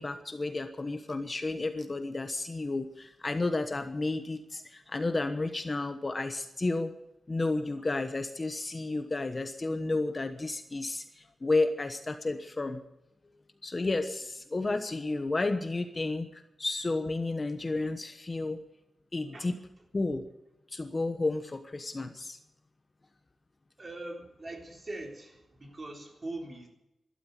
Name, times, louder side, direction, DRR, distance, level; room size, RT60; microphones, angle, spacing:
voice 1, 0.0-6.9 7.3-12.8 13.6-18.6 19.1-19.6 19.9-20.2 20.7-22.4, left 2 dB, 30° left, 7 dB, 1.2 m, -32 dB
voice 2, 23.8-26.7, right 2 dB, 30° right, 1 dB, 3.8 m, -42 dB
13.0 x 12.5 x 8.3 m, 0.89 s
wide cardioid pair, 130°, 0 cm